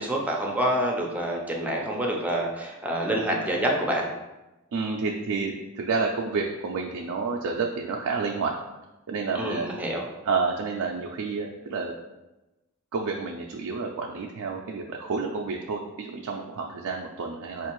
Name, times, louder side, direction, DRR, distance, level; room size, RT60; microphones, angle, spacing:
voice 1, 0.0-4.0 9.3-10.0, right 1 dB, 5° right, -1 dB, 0.5 m, -27 dB
voice 2, 4.7-8.5 9.1-9.7 10.2-12.0 12.9-17.7, right 4 dB, 75° right, 0 dB, 0.3 m, -29 dB
4.5 x 2.4 x 3.0 m, 1.0 s
head